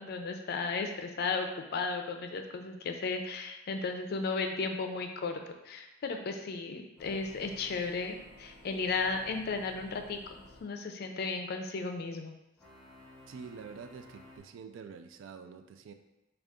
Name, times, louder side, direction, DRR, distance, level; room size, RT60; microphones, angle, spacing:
voice 1, 0.0-5.4 5.6-12.3, left 4 dB, 55° left, 5 dB, 0.4 m, -35 dB
sound 1, 7.0-10.7 12.6-14.4, left 1 dB, 5° left, 0.7 m, -55 dB
voice 2, 13.3-15.9, right 5 dB, 75° right, 8 dB, 0.3 m, -47 dB
3.7 x 2.3 x 3.5 m, 0.94 s
head